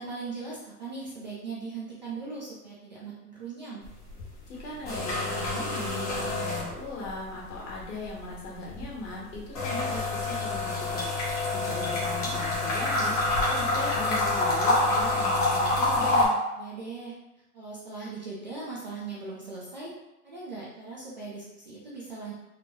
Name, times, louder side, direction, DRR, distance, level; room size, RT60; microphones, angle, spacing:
voice 1, 0.0-3.9 12.1-12.4 16.6-17.2 17.5-20.0 20.2-22.3, right 4 dB, 30° right, -7 dB, 0.4 m, -39 dB
sound 1, 3.8-4.2 4.5-7.2 7.5-16.3, left 2 dB, 25° left, 0.8 m, -27 dB
voice 2, 4.5-16.4, left 2 dB, 50° left, -4 dB, 1.5 m, -39 dB
4.0 x 2.2 x 3.6 m, 0.95 s
hypercardioid pair, 175°, 45 cm